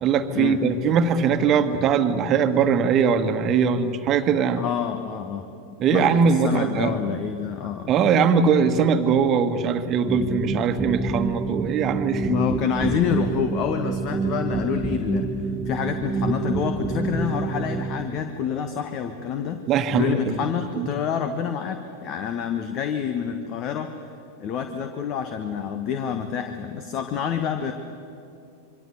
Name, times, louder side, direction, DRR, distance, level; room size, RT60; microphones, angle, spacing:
voice 1, 0.0-4.6 5.8-7.0 7.9-12.3 19.7-20.3 20.7-20.9, right 6 dB, 30° right, 8 dB, 1.6 m, -21 dB
voice 2, 4.6-5.5 5.9-7.9 12.3-15.3 15.6-19.6 19.9-23.9 24.4-27.7, left 7 dB, 35° left, 8 dB, 1.4 m, -27 dB
sound 1, 10.1-18.0, right 3 dB, 5° right, 1.7 m, -27 dB
26.5 x 24.0 x 8.4 m, 2.7 s
figure-of-eight pair, 90°, 0 cm